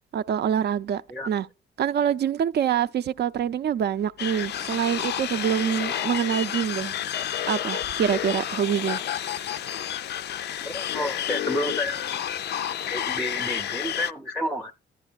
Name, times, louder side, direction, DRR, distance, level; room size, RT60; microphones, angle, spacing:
voice 1, 0.1-1.5 1.8-6.9 7.5-9.5, right 9 dB, 55° right, 0.4 m, -26 dB
sound 1, 4.2-14.1, left 10 dB, 55° left, 0.4 m, -30 dB
voice 2, 10.6-12.3 12.9-14.7, left 1 dB, ahead, 0.6 m, -30 dB
11.0 x 9.6 x 2.3 m
cardioid pair, 80°, 21 cm